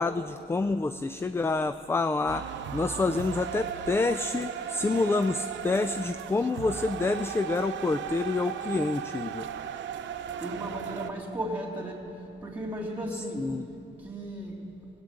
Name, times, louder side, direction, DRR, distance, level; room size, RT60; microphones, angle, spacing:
voice 1, 0.0-9.5 13.4-13.7, left 3 dB, 10° left, 11 dB, 0.3 m, -28 dB
sound 1, 2.3-11.1, right 9 dB, 65° right, 0.7 m, -36 dB
voice 2, 10.4-12.0 12.4-13.5 14.0-14.6, right 1 dB, 10° right, -2 dB, 3.3 m, -35 dB
16.5 x 8.8 x 7.7 m, 2.9 s
cardioid pair, 90°, 20 cm